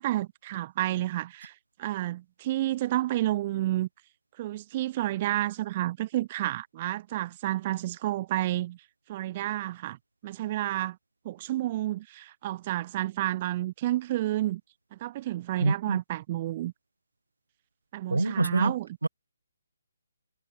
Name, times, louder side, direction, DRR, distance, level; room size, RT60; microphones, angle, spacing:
voice 1, 0.0-3.9 4.4-8.8 9.1-10.0 10.2-11.0 11.2-14.6 15.0-16.7 17.9-18.9, right 15 dB, 30° right, 0.9 m, -30 dB
voice 2, 15.6-16.0 18.1-18.7 19.0-19.1, right 2 dB, 80° right, 1.6 m, -25 dB
figure-of-eight pair, 145°, 0 cm